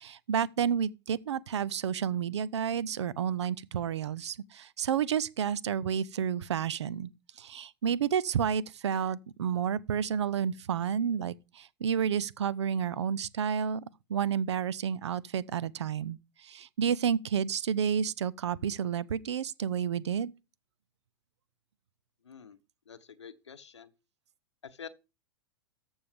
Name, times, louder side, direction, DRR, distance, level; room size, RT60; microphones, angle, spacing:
voice 1, 0.0-7.1 7.4-13.8 14.1-20.3, right 8 dB, 80° right, 0.5 m, -30 dB
voice 2, 22.2-22.6 22.9-23.9 24.6-24.9, left 7 dB, 90° left, 0.8 m, -47 dB
14.0 x 5.3 x 3.5 m
hypercardioid pair, 100°, 14 cm